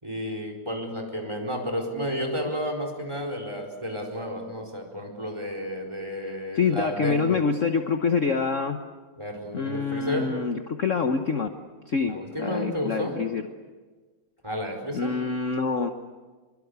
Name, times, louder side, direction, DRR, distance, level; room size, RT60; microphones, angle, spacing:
voice 1, 0.0-7.4 9.2-10.3 12.1-13.1 14.4-15.1, equal, 15° right, 3 dB, 4.4 m, -32 dB
voice 2, 6.2-8.8 9.5-11.5 11.9-13.4 14.9-15.9, left 5 dB, 45° left, 6 dB, 1.3 m, -26 dB
25.0 x 23.5 x 8.2 m, 1.3 s
omnidirectional pair, 2.1 m